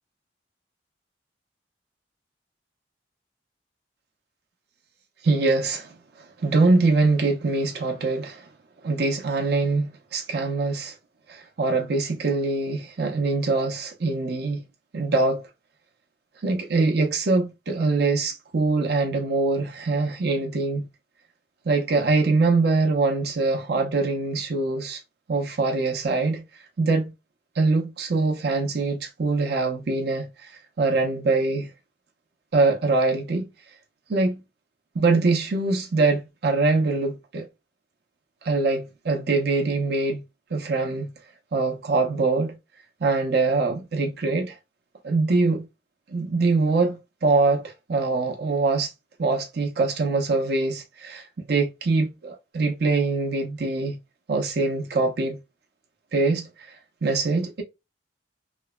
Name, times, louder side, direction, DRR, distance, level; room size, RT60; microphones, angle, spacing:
voice 1, 5.2-5.9 6.4-8.5 8.8-10.9 11.3-14.6 14.9-15.4 16.4-20.9 21.7-25.0 25.3-26.4 26.8-27.1 27.6-30.5 30.8-31.7 32.5-33.5 34.1-34.4 34.9-37.5 38.4-40.2 40.5-41.1 41.5-42.6 43.0-44.5 45.0-45.6 46.1-48.9 49.2-54.0 54.3-55.4 56.1-56.5 57.0-57.6, right 3 dB, 60° right, 0.6 m, -23 dB
3.2 x 2.0 x 2.2 m
head